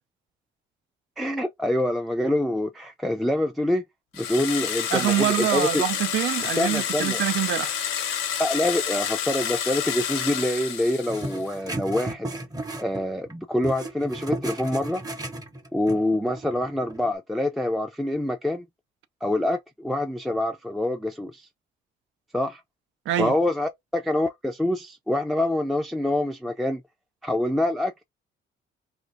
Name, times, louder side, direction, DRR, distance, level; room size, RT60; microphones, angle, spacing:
voice 1, 1.2-3.8 4.1-5.8 6.6-7.2 8.4-12.3 12.8-15.0 15.7-18.6 19.2-21.5 22.3-22.6 23.2-26.8 27.2-28.0, left 1 dB, ahead, 0.4 m, -26 dB
sound 1, 4.1-11.5, left 9 dB, 90° left, 0.6 m, -29 dB
voice 2, 4.9-7.8 23.1-23.3, right 12 dB, 80° right, 0.5 m, -25 dB
sound 2, 11.1-13.3 13.6-17.1, right 2 dB, 20° right, 0.7 m, -34 dB
2.4 x 2.4 x 4.0 m
cardioid pair, 90°, 20 cm